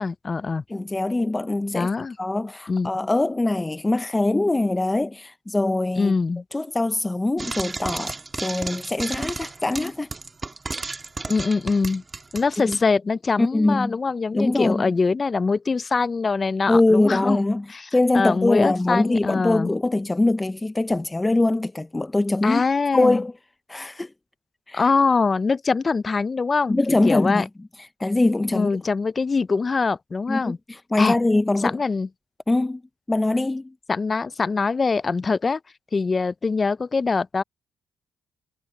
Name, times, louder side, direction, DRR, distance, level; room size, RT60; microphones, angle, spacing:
voice 1, 0.0-0.6 1.7-2.2 2.7-2.9 6.0-6.4 11.3-12.0 12.3-17.4 17.7-17.9 18.1-19.7 22.4-23.2 24.7-27.4 28.5-30.6 31.0-31.2 31.6-32.1 33.9-35.6 35.9-37.4, left 4 dB, 35° left, 0.5 m, -23 dB
voice 2, 0.7-1.9 2.2-6.1 6.5-10.1 12.7-12.8 13.4-14.0 14.3-14.8 16.7-22.6 22.9-23.3 23.7-24.1 24.7-24.8 26.7-27.5 28.0-28.7 30.3-31.8 32.5-32.8 33.1-33.7, left 2 dB, 20° left, 0.8 m, -22 dB
Frying (food), 7.4-12.8, right 3 dB, 30° right, 1.6 m, -33 dB
cardioid pair, 75°, 0 cm